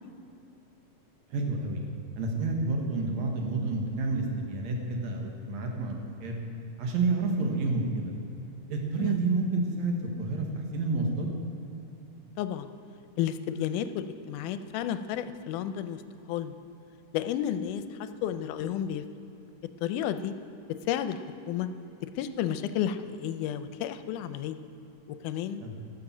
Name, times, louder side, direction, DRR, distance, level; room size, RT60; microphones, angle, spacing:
voice 1, 1.3-1.8 2.2-6.4 6.8-8.1 8.7-11.3 25.6-25.8, right 3 dB, 65° right, 1 dB, 2.4 m, -29 dB
voice 2, 12.4-12.7 13.2-16.0 16.3-16.5 17.1-19.0 19.8-20.3 20.9-21.7 22.2-24.6 25.2-25.6, left 10 dB, 80° left, 10 dB, 2.0 m, -32 dB
12.5 x 7.2 x 7.2 m, 2.9 s
omnidirectional pair, 3.7 m